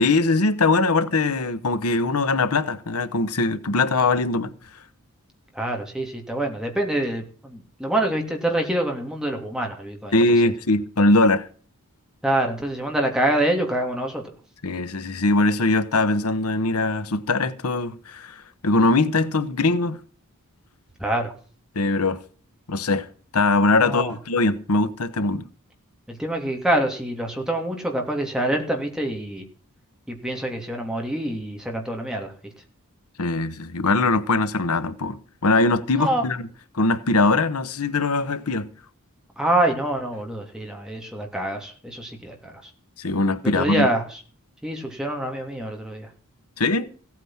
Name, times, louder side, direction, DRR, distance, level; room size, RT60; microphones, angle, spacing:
voice 1, 0.0-4.5 10.1-11.5 14.6-20.0 21.7-22.2 22.7-23.1 23.3-25.4 33.2-36.4 36.7-38.7 43.0-43.9 46.6-46.9, left 2 dB, 80° left, 1.1 m, -21 dB
voice 2, 5.5-10.2 12.2-14.2 21.0-21.3 23.8-24.1 26.1-29.4 30.1-32.3 36.0-36.2 39.4-42.7 43.5-44.2 44.6-46.1, right 1 dB, 5° right, 2.9 m, -26 dB
16.5 x 9.1 x 5.8 m
head